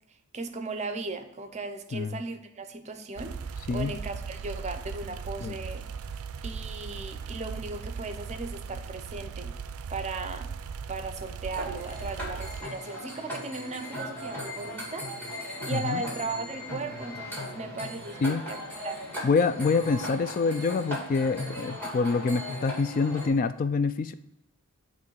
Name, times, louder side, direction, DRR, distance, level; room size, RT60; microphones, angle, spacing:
voice 1, 0.3-3.4 3.7-5.9 6.4-9.5 9.9-10.5 10.9-15.1 15.6-19.0, right 3 dB, 30° right, 8 dB, 0.6 m, -37 dB
sound 1, 3.2-12.6, right 5 dB, 80° right, 0.4 m, -38 dB
sound 2, 11.5-23.3, left 1 dB, 10° left, 2.4 m, -38 dB
voice 2, 15.7-16.0 18.2-18.4 19.2-24.1, left 4 dB, 40° left, 12 dB, 0.3 m, -26 dB
9.2 x 3.1 x 4.6 m, 0.90 s
head